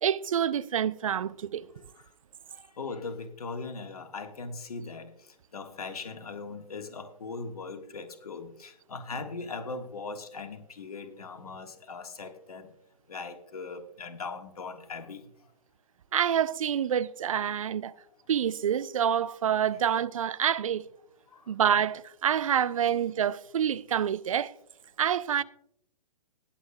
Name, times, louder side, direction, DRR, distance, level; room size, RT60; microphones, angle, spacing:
voice 1, 0.0-1.7 16.1-17.9 18.3-20.8 21.5-24.5 25.0-25.4, right 9 dB, 55° right, 0.5 m, -27 dB
voice 2, 2.5-12.7 13.1-15.3 21.3-21.5, left 4 dB, 65° left, 1.6 m, -40 dB
19.5 x 8.7 x 2.2 m
figure-of-eight pair, 125°, 20 cm